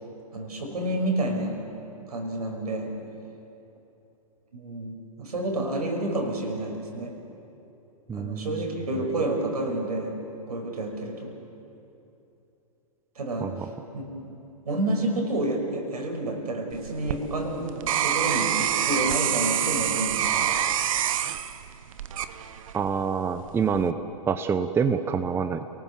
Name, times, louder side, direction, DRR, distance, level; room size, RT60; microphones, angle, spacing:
voice 1, 0.3-1.6 2.1-2.9 4.5-7.1 8.1-10.2 10.5-11.3 13.2-13.7 13.9-14.4 14.6-20.5, right 1 dB, 75° right, 2 dB, 6.0 m, -29 dB
voice 2, 8.1-8.7 13.4-13.5 22.7-23.9 24.3-25.6, right 6 dB, 10° right, 9 dB, 0.7 m, -26 dB
sound 1, 16.7-22.9 23.4-23.9, right 10 dB, 55° right, 1.0 m, -26 dB
29.0 x 19.0 x 7.2 m, 2.9 s
hypercardioid pair, 120°, 20 cm